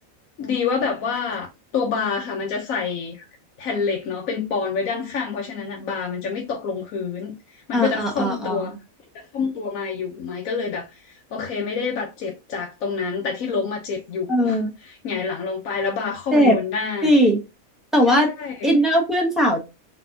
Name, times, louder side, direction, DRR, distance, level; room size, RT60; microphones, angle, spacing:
voice 1, 0.4-1.5 1.7-3.3 3.6-7.4 7.7-8.8 9.3-10.9 11.3-14.6 15.0-17.1 18.4-18.7, left 5 dB, 80° left, 1.2 m, -27 dB
voice 2, 7.7-8.8 14.3-14.7 16.3-16.6 17.0-17.4 17.9-18.3 18.6-19.6, equal, ahead, 1.2 m, -19 dB
4.1 x 3.3 x 2.7 m
omnidirectional pair, 1.4 m